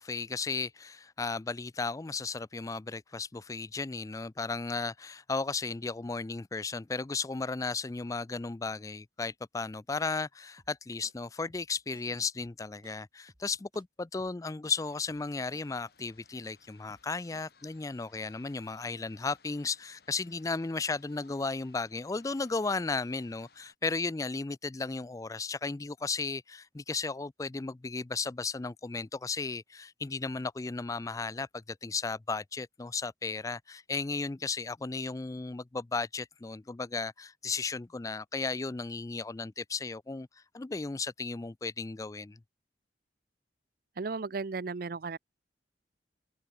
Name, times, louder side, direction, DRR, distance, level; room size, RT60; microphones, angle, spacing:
voice 1, 0.0-40.3 40.5-42.4, left 4 dB, 20° left, 0.4 m, -35 dB
sound 1, 10.6-10.8 11.0-11.1 11.5-11.7 11.9-12.0 12.4-12.6 12.8-12.9 13.3-13.5 13.7-13.8 14.2-14.4 14.6-14.7 15.1-15.3 15.5-15.6 16.0-16.5 16.9-17.1 17.3-17.5, right 1 dB, 30° right, 5.8 m, -61 dB
sound 2, 14.7-23.7, left 5 dB, 60° left, 5.5 m, -63 dB
voice 2, 44.0-45.2, right 4 dB, 55° right, 0.5 m, -35 dB
open air
head